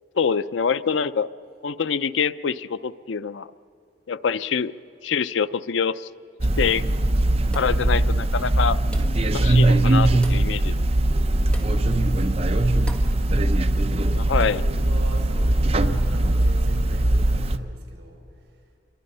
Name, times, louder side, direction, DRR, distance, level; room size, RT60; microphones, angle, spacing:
voice 1, 0.1-1.3 1.6-3.5 4.1-4.7 5.0-6.1 6.6-6.8 7.5-8.8 9.2-10.7 14.2-14.6, left 6 dB, 85° left, 15 dB, 0.5 m, -25 dB
sound 1, 6.4-17.6, right 1 dB, 35° right, 0.7 m, -20 dB
sound 2, 7.5-7.9 8.9-9.3 10.2-10.5 11.5-11.8 12.9-13.2, equal, 5° left, 1.5 m, -42 dB
voice 2, 11.7-13.1 13.5-18.5, right 1 dB, 60° right, 0 dB, 5.2 m, -44 dB
27.5 x 23.0 x 5.5 m, 2.6 s
head